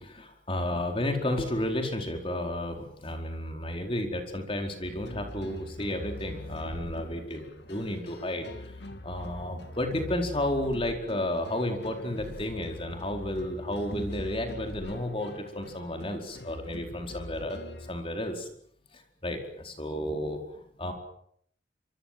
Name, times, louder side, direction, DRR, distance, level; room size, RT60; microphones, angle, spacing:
voice 1, 0.0-8.7 9.0-17.6 17.9-18.5 18.9-20.9, left 1 dB, 30° left, 4 dB, 4.8 m, -32 dB
sound 1, 4.8-17.9, left 1 dB, 60° left, 2.5 m, -43 dB
25.5 x 24.0 x 7.8 m, 0.67 s
head